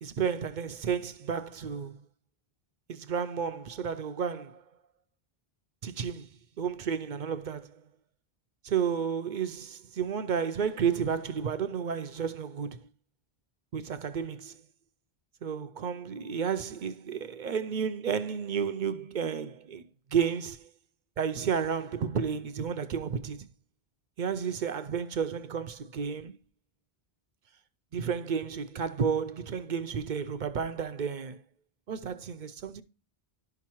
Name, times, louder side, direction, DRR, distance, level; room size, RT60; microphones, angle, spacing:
voice 1, 0.0-2.0 2.9-4.6 5.8-6.3 6.6-7.8 8.6-12.8 13.7-14.6 15.4-19.8 20.1-20.6 21.2-23.5 24.2-26.4 27.9-31.4 31.9-32.8, right 7 dB, 55° right, 0.6 m, -32 dB
11.5 x 5.9 x 2.9 m
omnidirectional pair, 1.0 m